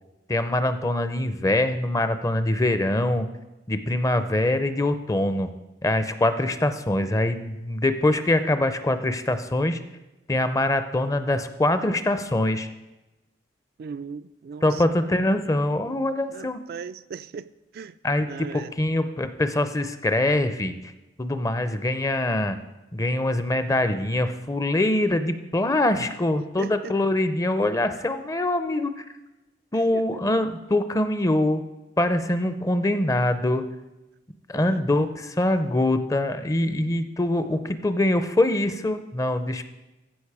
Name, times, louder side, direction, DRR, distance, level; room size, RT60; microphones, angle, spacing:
voice 1, 0.3-3.3 3.7-5.5 5.8-9.8 10.3-12.7 14.6-16.6 18.0-20.7 21.2-22.6 22.9-29.0 29.7-31.6 32.0-33.7 34.5-39.6, left 1 dB, 20° left, 10 dB, 0.5 m, -24 dB
voice 2, 13.8-14.8 16.3-17.5 17.7-17.9 18.3-18.7 26.0-26.1 26.6-26.9 29.9-30.0 34.5-34.8, right 6 dB, 55° right, 12 dB, 0.3 m, -38 dB
15.0 x 5.2 x 4.8 m, 1.0 s
head